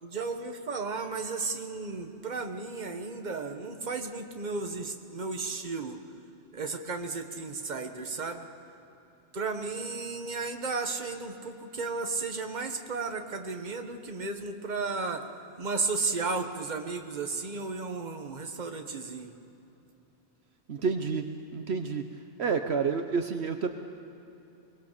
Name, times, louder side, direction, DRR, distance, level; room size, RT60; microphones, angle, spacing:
voice 1, 0.0-6.0 6.5-8.5 9.3-15.3 15.6-19.3, right 4 dB, 40° right, 5 dB, 1.4 m, -34 dB
voice 2, 20.7-23.7, right 5 dB, 70° right, 7 dB, 1.1 m, -30 dB
23.0 x 20.0 x 6.7 m, 3.0 s
omnidirectional pair, 1.2 m